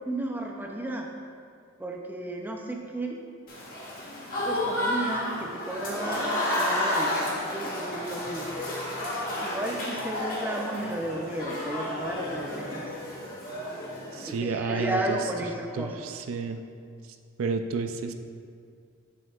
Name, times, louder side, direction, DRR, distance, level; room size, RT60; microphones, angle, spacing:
voice 1, 0.1-1.1 1.8-3.2 4.4-6.3 6.6-8.5 9.4-12.9 14.1-16.1, right 1 dB, 10° right, 1 dB, 0.5 m, -33 dB
Applause / Crowd, 3.5-14.4, left 1 dB, 45° left, 1.6 m, -31 dB
voice 2, 14.1-15.2 15.7-16.6 17.4-18.1, right 4 dB, 80° right, 7 dB, 0.4 m, -31 dB
8.1 x 7.1 x 2.4 m, 2.3 s
head